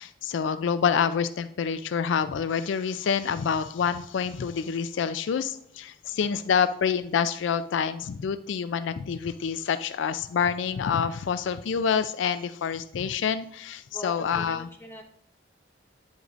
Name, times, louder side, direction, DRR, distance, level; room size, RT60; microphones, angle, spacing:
voice 1, 0.0-14.7, left 7 dB, 75° left, 12 dB, 0.3 m, -27 dB
voice 2, 13.9-15.0, left 2 dB, 10° left, 0 dB, 1.2 m, -42 dB
9.3 x 8.0 x 2.5 m, 0.70 s
head